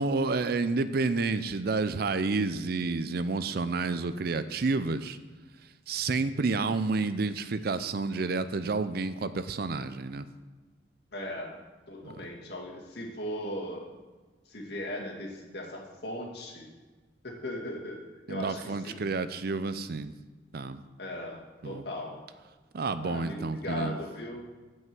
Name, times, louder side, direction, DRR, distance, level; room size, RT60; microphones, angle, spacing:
voice 1, 0.0-5.2 5.9-10.3 12.0-12.3 18.3-20.1 20.5-20.8 21.6-21.8 22.7-24.0, right 3 dB, 60° right, 13 dB, 0.5 m, -30 dB
voice 2, 11.1-11.6 11.9-13.9 14.5-16.7 17.2-18.0 18.3-19.1 21.0-22.2 23.0-24.5, left 1 dB, 65° left, -1 dB, 2.2 m, -38 dB
9.3 x 5.5 x 7.7 m, 1.3 s
head